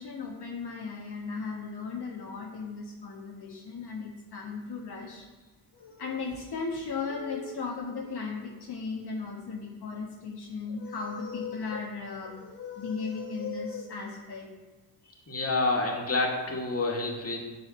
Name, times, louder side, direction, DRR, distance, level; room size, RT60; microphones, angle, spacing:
voice 1, 0.0-5.3 5.7-14.5 15.0-15.4, left 4 dB, 70° left, -1 dB, 1.5 m, -36 dB
voice 2, 15.3-17.6, left 2 dB, 35° left, 0 dB, 2.1 m, -28 dB
7.9 x 4.8 x 7.0 m, 1.2 s
cardioid pair, 65°, 41 cm